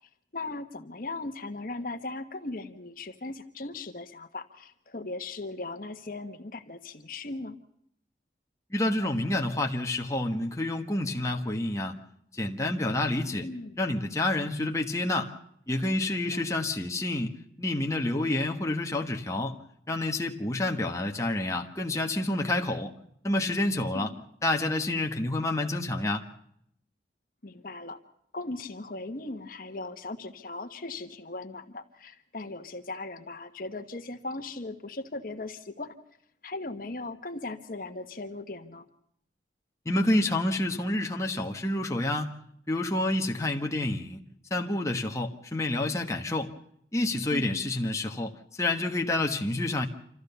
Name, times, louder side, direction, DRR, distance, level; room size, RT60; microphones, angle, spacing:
voice 1, 0.3-7.5 13.4-13.7 16.3-16.4 23.9-24.2 27.4-28.0 28.3-35.9 36.4-38.8 47.3-47.5, left 2 dB, 50° left, 6 dB, 1.3 m, -38 dB
voice 2, 8.7-11.9 12.3-13.5 13.8-15.3 15.7-19.5 19.9-22.9 23.2-24.1 24.4-26.2 39.8-42.3 42.7-44.2 44.5-46.5 46.9-49.9, left 2 dB, 15° left, 2 dB, 1.4 m, -28 dB
26.5 x 14.5 x 6.9 m, 0.72 s
head